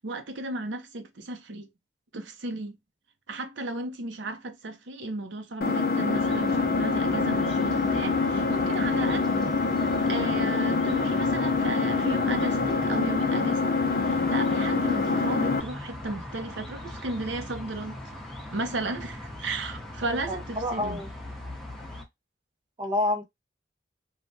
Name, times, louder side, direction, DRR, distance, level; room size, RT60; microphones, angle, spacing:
voice 1, 0.0-1.7 2.1-2.8 3.3-9.3 9.8-13.6 14.0-18.0 18.5-21.0, right 2 dB, 75° right, 0.7 m, -34 dB
Engine, 5.6-15.6, left 4 dB, 55° left, 0.5 m, -25 dB
sound 1, 6.1-22.0, left 1 dB, ahead, 0.7 m, -41 dB
voice 2, 20.1-21.1 22.8-23.2, left 1 dB, 25° right, 0.5 m, -28 dB
3.2 x 2.2 x 2.6 m
head